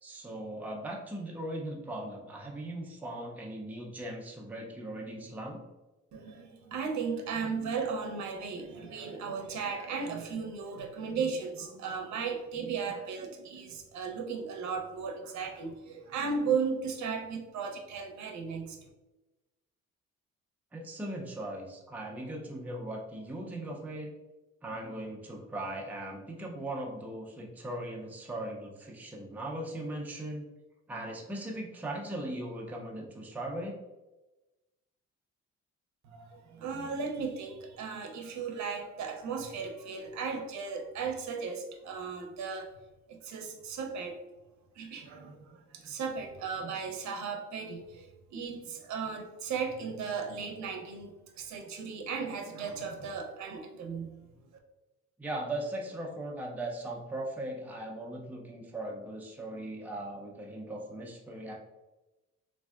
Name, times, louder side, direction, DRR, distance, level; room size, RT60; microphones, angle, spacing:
voice 1, 0.0-5.6 20.7-24.1 24.6-30.4 30.9-33.7 55.2-61.5, right 1 dB, 5° right, -1 dB, 0.5 m, -39 dB
voice 2, 6.1-18.8 36.0-42.7 43.1-44.2 44.8-54.1, right 5 dB, 65° right, 3 dB, 0.6 m, -36 dB
3.3 x 2.6 x 2.3 m, 1.1 s
cardioid pair, 90°, 30 cm